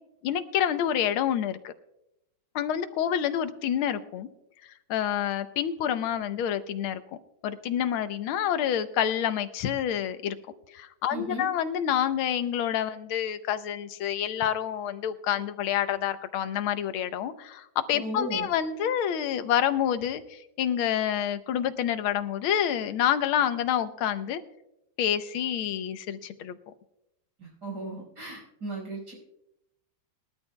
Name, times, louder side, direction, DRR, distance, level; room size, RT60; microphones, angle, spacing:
voice 1, 0.2-1.7 2.5-4.3 4.6-7.0 7.4-10.4 10.7-24.4 25.0-26.6, left 9 dB, 85° left, 12 dB, 1.6 m, -28 dB
voice 2, 11.1-11.5 18.0-18.5 27.4-29.1, right 1 dB, 55° right, -2 dB, 5.7 m, -36 dB
21.0 x 12.5 x 2.2 m, 0.85 s
omnidirectional pair, 2.2 m